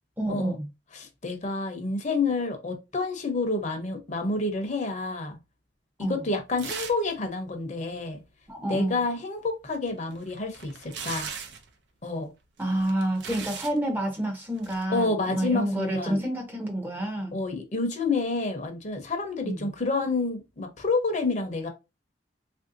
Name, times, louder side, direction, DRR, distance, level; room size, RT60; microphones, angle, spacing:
voice 1, 0.2-0.7 6.0-6.2 8.5-9.0 12.6-17.4 19.4-19.7, right 1 dB, 10° right, 0.6 m, -28 dB
voice 2, 0.9-5.4 6.0-8.2 8.7-11.3 12.0-12.3 14.9-16.2 17.3-21.7, left 3 dB, 40° left, 0.7 m, -29 dB
sound 1, 6.6-7.1 7.4-7.5 9.9-11.7 12.6-13.8 14.6-14.8, right 6 dB, 80° right, 0.5 m, -38 dB
3.3 x 2.6 x 2.6 m
head